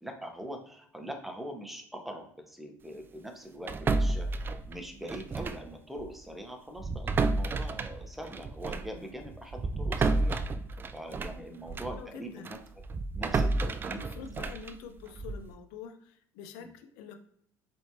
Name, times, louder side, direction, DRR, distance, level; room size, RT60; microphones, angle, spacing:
voice 1, 0.0-4.4 4.7-10.4 10.9-12.6 13.1-14.0 14.4-14.5 16.6-16.7, equal, ahead, 4 dB, 1.0 m, -42 dB
sound 1, 3.7-5.7 6.0-6.2 6.8-12.0 12.4-15.5, right 3 dB, 25° right, 0.3 m, -31 dB
voice 2, 11.9-12.5 13.9-17.1, left 6 dB, 80° left, 7 dB, 0.7 m, -46 dB
4.3 x 3.4 x 2.8 m, 0.65 s
supercardioid pair, 95°, 8 cm